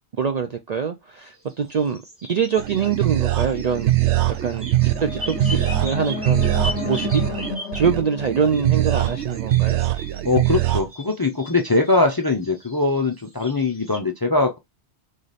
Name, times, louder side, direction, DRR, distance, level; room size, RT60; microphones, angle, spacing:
voice 1, 0.2-4.0 4.4-4.7 5.0-6.5 6.8-7.2 7.7-9.8, right 6 dB, 55° right, 0.4 m, -24 dB
sound 1, 1.3-8.1 8.5-14.0, left 1 dB, 10° right, 1.3 m, -38 dB
sound 2, 2.6-10.8, right 13 dB, 85° right, 0.9 m, -22 dB
sound 3, 4.6-9.7, left 5 dB, 85° left, 0.9 m, -33 dB
voice 2, 10.2-14.6, left 3 dB, 30° left, 0.4 m, -21 dB
3.9 x 3.2 x 4.0 m
omnidirectional pair, 1.1 m